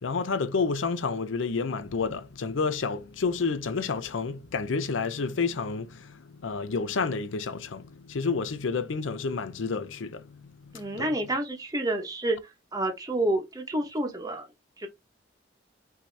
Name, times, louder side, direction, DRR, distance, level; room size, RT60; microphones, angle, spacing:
voice 1, 0.0-10.4 10.7-11.1, left 4 dB, 85° left, 0.6 m, -30 dB
voice 2, 10.7-12.4 12.7-14.5 14.8-14.9, right 1 dB, 20° right, 0.9 m, -29 dB
5.8 x 2.7 x 3.2 m
head